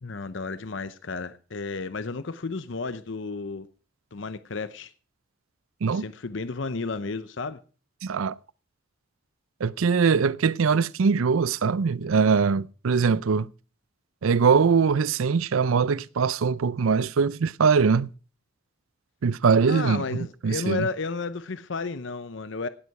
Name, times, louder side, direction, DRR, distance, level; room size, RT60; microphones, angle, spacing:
voice 1, 0.0-3.7 4.1-4.9 5.9-7.6 19.7-22.7, left 4 dB, 65° left, 0.7 m, -32 dB
voice 2, 8.0-8.3 9.6-13.5 14.2-18.1 19.2-20.9, right 5 dB, 85° right, 0.5 m, -22 dB
17.0 x 8.3 x 4.7 m
head